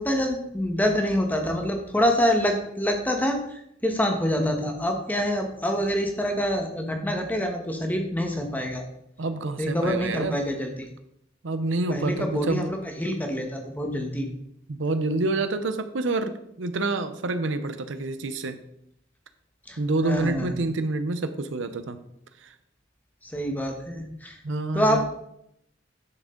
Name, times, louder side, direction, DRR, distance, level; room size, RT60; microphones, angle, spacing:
voice 1, 0.0-8.8 9.6-10.9 11.9-14.3 19.7-20.6 23.3-24.4 24.7-25.0, equal, 10° left, 3 dB, 1.3 m, -26 dB
voice 2, 9.2-10.4 11.4-12.7 14.7-18.6 19.8-22.0 22.4-22.5 24.4-25.0, right 2 dB, 75° right, 10 dB, 0.7 m, -27 dB
10.5 x 6.4 x 3.8 m, 0.76 s
head